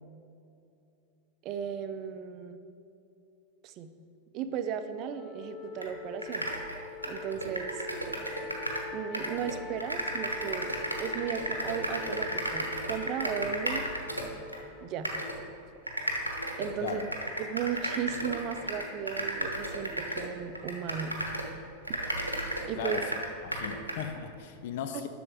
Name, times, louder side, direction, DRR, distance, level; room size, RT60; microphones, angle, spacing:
voice 1, 1.4-2.6 3.6-3.9 4.3-6.5 7.1-7.8 8.9-13.9 14.8-15.1 16.6-17.1 17.4-21.2 22.7-23.0, right 8 dB, 40° right, 9 dB, 0.5 m, -35 dB
Wind instrument woodwind instrument, 5.1-15.5, left 5 dB, 15° left, 0.8 m, -45 dB
sound 1, 5.8-5.9 6.2-8.9 9.1-14.6 15.0-15.4 15.9-21.5 21.8-24.1, right 1 dB, 90° right, 1.0 m, -34 dB
voice 2, 22.8-23.1 23.4-25.1, left 8 dB, 50° left, 8 dB, 0.5 m, -37 dB
10.5 x 6.8 x 3.6 m, 2.7 s
figure-of-eight pair, 90°, 0 cm